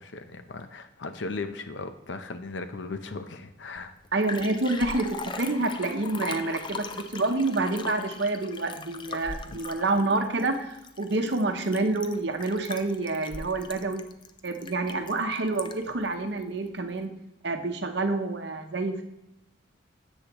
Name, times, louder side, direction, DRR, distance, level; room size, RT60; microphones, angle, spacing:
voice 1, 0.0-3.9 9.5-9.6, left 3 dB, 65° left, 9 dB, 0.7 m, -37 dB
Liquid, 3.8-3.9 4.0-16.0 16.4-16.5, left 4 dB, 25° left, 0.4 m, -40 dB
voice 2, 4.1-14.0 14.4-17.1 17.4-19.0, right 2 dB, 60° right, 5 dB, 0.8 m, -28 dB
10.0 x 8.0 x 3.0 m, 0.89 s
head